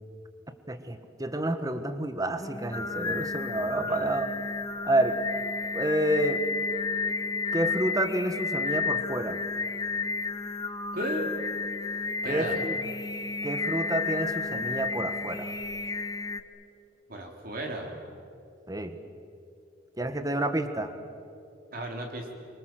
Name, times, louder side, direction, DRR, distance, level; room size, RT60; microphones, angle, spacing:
voice 1, 0.7-4.3 4.8-5.2 5.7-6.5 7.5-9.4 12.2-12.8 13.4-15.5 18.7-19.0 20.0-20.9, right 1 dB, 20° right, 9 dB, 1.4 m, -29 dB
Singing, 2.4-16.4, left 4 dB, 20° left, 0.9 m, -32 dB
voice 2, 10.9-11.3 12.2-12.6 17.1-18.0 21.7-22.3, right 1 dB, 50° right, 1 dB, 3.7 m, -34 dB
27.5 x 24.5 x 7.7 m, 2.6 s
head